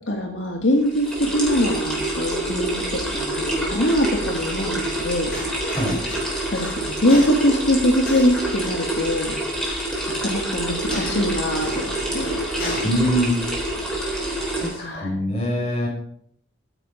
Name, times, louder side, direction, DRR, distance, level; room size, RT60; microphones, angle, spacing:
voice 1, 0.1-5.7 6.5-9.4 10.1-12.4 14.8-15.2, equal, 85° left, 2 dB, 1.7 m, -23 dB
sound 1, 0.8-14.7, right 1 dB, 5° left, 3.7 m, -27 dB
sound 2, 3.5-15.0, left 1 dB, 50° left, 3.8 m, -38 dB
voice 2, 12.8-13.3 14.6-15.9, equal, 35° left, -3 dB, 5.8 m, -23 dB
11.5 x 10.0 x 5.1 m, 0.66 s
head